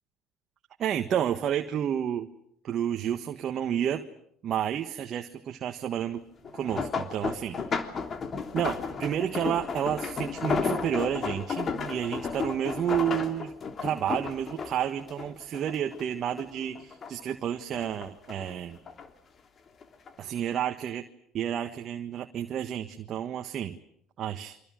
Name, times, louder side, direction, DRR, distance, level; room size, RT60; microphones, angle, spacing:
voice 1, 0.8-2.3 2.6-4.1 4.4-6.2 6.5-8.0 8.5-13.5 13.8-18.8 20.2-21.0 21.3-23.8 24.2-24.6, right 9 dB, 55° right, 6 dB, 1.5 m, -30 dB
sound 1, 6.4-16.0 16.4-17.3 17.7-19.1 19.8-20.1 20.5-20.6, left 5 dB, 45° left, 3.2 m, -33 dB
29.0 x 25.5 x 6.4 m, 0.74 s
hypercardioid pair, 70°, 0 cm